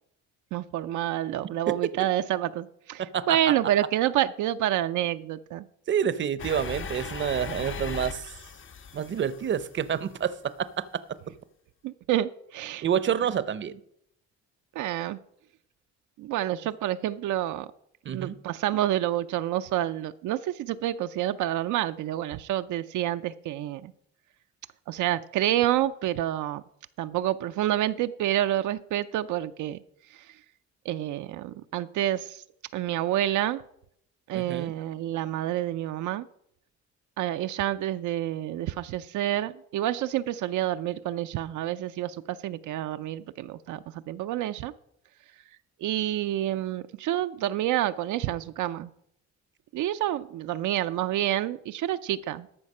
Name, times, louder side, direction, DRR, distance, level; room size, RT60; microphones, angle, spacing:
voice 1, 0.5-5.7 11.8-12.8 14.8-15.2 16.2-17.7 18.1-23.9 24.9-26.6 27.0-29.8 30.1-30.3 30.9-32.4 32.7-33.6 34.3-36.3 37.2-44.7 45.8-48.9 49.7-52.5, right 13 dB, 80° right, 0.5 m, -28 dB
voice 2, 3.1-3.5 5.9-8.3 8.9-11.0 12.8-13.8 18.1-18.4 34.3-34.7, right 8 dB, 40° right, 0.6 m, -28 dB
sound 1, 6.4-10.3, left 5 dB, 40° left, 0.8 m, -38 dB
13.0 x 5.7 x 5.4 m
cardioid pair, 90°, 30 cm